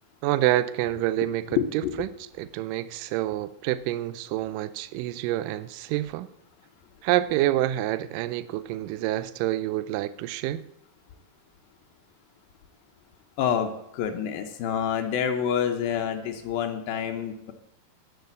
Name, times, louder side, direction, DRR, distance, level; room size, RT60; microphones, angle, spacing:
voice 1, 0.2-1.6 2.0-2.1 2.4-6.3 7.0-10.7, right 14 dB, 80° right, 14 dB, 2.0 m, -27 dB
voice 2, 1.5-1.9 13.4-17.5, left 8 dB, 80° left, 6 dB, 2.6 m, -27 dB
11.0 x 6.8 x 8.2 m, 0.80 s
omnidirectional pair, 4.2 m